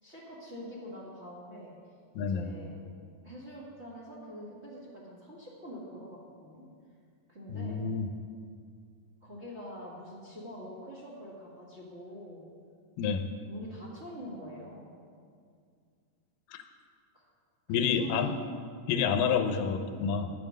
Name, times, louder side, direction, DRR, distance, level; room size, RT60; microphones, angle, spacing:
voice 1, 0.0-1.7 2.1-2.8 3.2-6.6 7.3-7.8 9.2-12.4 13.5-14.9 17.1-17.3 17.8-18.3, equal, 25° right, -4 dB, 1.6 m, -45 dB
voice 2, 2.2-2.5 7.5-8.1 13.0-13.3 16.5-16.6 17.7-18.4 18.9-20.3, left 6 dB, 85° left, 7 dB, 2.4 m, -28 dB
11.0 x 9.3 x 6.5 m, 2.2 s
omnidirectional pair, 3.8 m